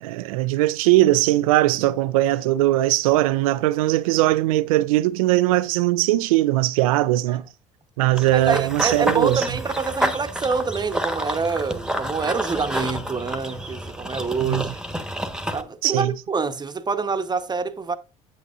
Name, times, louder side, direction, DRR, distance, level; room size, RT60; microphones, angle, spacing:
voice 1, 0.0-7.5 8.0-9.5 14.4-14.6 15.8-16.1, right 16 dB, 75° right, 0.4 m, -20 dB
Run / Bird vocalization bird call bird song, 8.2-15.6, right 1 dB, 5° right, 1.3 m, -29 dB
voice 2, 8.3-14.8 15.5-18.0, right 4 dB, 25° right, 1.0 m, -26 dB
8.6 x 8.5 x 2.5 m
hypercardioid pair, 60°, 18 cm